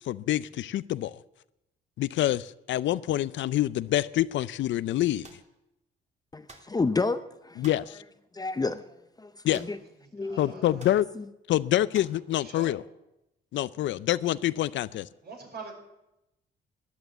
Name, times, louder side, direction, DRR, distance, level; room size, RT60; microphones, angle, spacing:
voice 1, 0.1-1.2 2.0-5.3 7.6-8.0 9.4-9.6 10.4-11.1 11.5-12.8 13.5-15.1, left 13 dB, 70° left, 18 dB, 0.5 m, -26 dB
sound 1, 5.2-5.5 6.5-6.8 7.6-7.9 9.5-9.9 10.2-10.3 10.8-11.0 11.9-12.2, right 2 dB, 35° right, 2.6 m, -50 dB
voice 2, 6.3-7.6 8.3-8.8 9.2-9.3 9.7-9.8 10.1-10.6 11.2-11.3, left 3 dB, 20° left, 11 dB, 0.6 m, -30 dB
voice 3, 10.2-10.9 12.3-12.8 15.2-15.7, right 4 dB, 55° right, 2 dB, 5.2 m, -44 dB
13.0 x 10.0 x 8.2 m, 0.90 s
cardioid pair, 90°, 20 cm